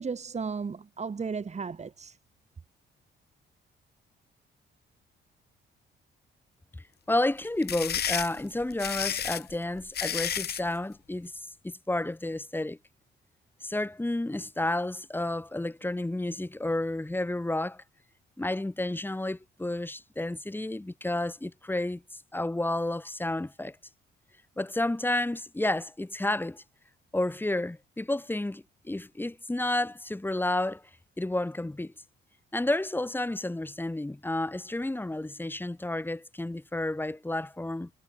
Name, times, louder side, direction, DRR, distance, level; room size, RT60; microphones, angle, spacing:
voice 1, 0.0-2.2, right 5 dB, 35° right, 3.0 m, -34 dB
voice 2, 7.1-11.3 11.6-12.8 13.6-17.8 18.4-23.8 24.6-26.6 27.1-30.8 31.2-31.9 32.5-37.9, left 1 dB, 10° left, 2.0 m, -31 dB
sound 1, 7.4-10.7, left 9 dB, 55° left, 1.2 m, -31 dB
cardioid pair, 90°, 20 cm